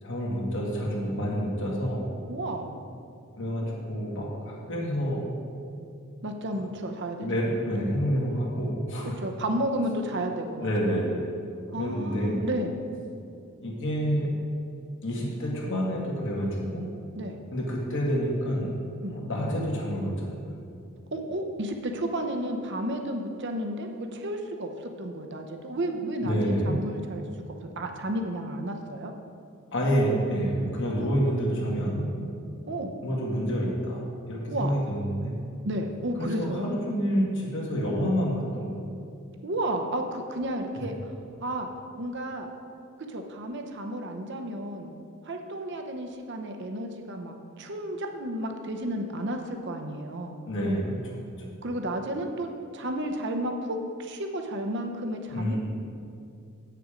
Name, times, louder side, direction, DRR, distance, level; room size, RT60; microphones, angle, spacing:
voice 1, 0.0-2.0 3.4-5.3 6.5-6.6 7.2-9.2 10.6-11.3 11.8-12.4 13.6-14.4 15.0-16.9 17.5-18.7 19.1-20.5 26.2-26.9 29.7-32.2 33.0-35.3 36.2-38.7 40.8-40.9 50.5-51.1 55.3-55.6, equal, 55° left, -3 dB, 1.8 m, -28 dB
voice 2, 2.3-2.7 3.6-4.0 6.2-7.6 9.2-10.7 11.7-12.7 17.1-17.4 19.0-19.2 21.1-29.1 32.7-32.9 34.5-34.7 35.6-36.7 39.4-41.0 41.4-41.7 42.0-42.5 43.1-44.9 45.2-50.4 51.6-52.5 52.7-55.6, right 1 dB, 50° right, 4 dB, 0.8 m, -32 dB
8.6 x 6.8 x 5.0 m, 2.5 s
head